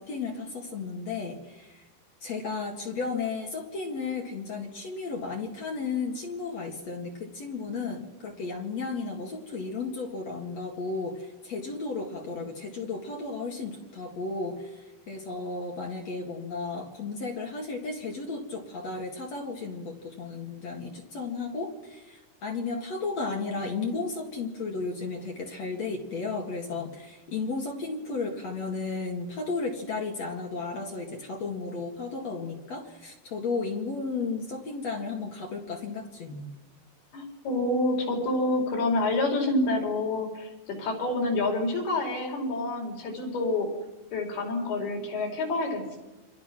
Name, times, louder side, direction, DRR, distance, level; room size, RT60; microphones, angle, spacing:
voice 1, 0.0-1.8 2.2-36.5, left 4 dB, 50° left, 1 dB, 2.9 m, -34 dB
voice 2, 37.1-40.5 40.8-43.7 44.1-46.0, left 2 dB, 70° left, 2 dB, 6.5 m, -28 dB
29.0 x 24.5 x 6.1 m, 1.1 s
omnidirectional pair, 4.6 m